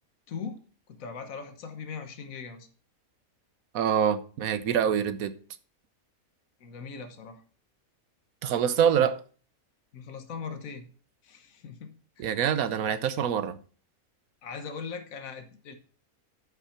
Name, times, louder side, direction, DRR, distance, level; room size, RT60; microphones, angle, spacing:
voice 1, 0.3-0.6 0.9-2.7 6.6-7.4 9.9-10.9 11.2-12.3 14.4-15.8, left 5 dB, 70° left, 1.5 m, -40 dB
voice 2, 3.7-5.3 8.4-9.2 12.2-13.6, right 8 dB, 75° right, 1.2 m, -25 dB
9.6 x 5.9 x 5.7 m
omnidirectional pair, 1.5 m